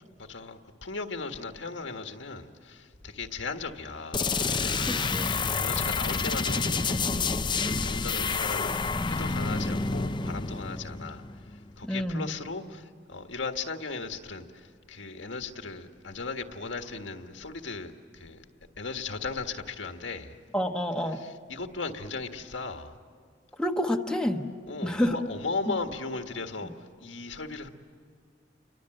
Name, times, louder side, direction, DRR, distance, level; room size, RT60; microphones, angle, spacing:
voice 1, 0.2-18.4 18.8-20.4 21.1-23.0 24.7-27.7, left 4 dB, 80° left, 1.6 m, -37 dB
sound 1, 4.1-11.7, left 4 dB, 25° left, 0.6 m, -29 dB
voice 2, 4.9-5.4 11.8-12.2 20.5-21.3 23.6-24.5 24.8-25.2 25.7-25.8, left 1 dB, 5° left, 1.2 m, -28 dB
30.0 x 24.0 x 7.9 m
head